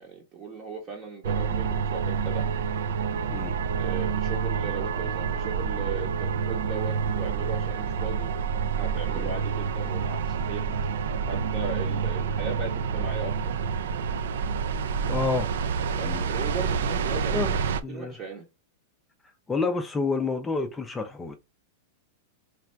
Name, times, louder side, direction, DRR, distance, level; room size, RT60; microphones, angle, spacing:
voice 1, 0.0-2.5 3.8-8.3 8.8-10.7 11.3-13.5 15.9-17.6 17.9-18.4, right 5 dB, 25° right, 0.8 m, -37 dB
sound 1, 1.2-17.8, right 6 dB, 80° right, 0.4 m, -28 dB
voice 2, 15.1-15.5 16.0-16.3 17.3-18.2 19.5-21.4, left 4 dB, 10° left, 0.4 m, -29 dB
3.1 x 2.4 x 4.4 m
supercardioid pair, 160°, 0 cm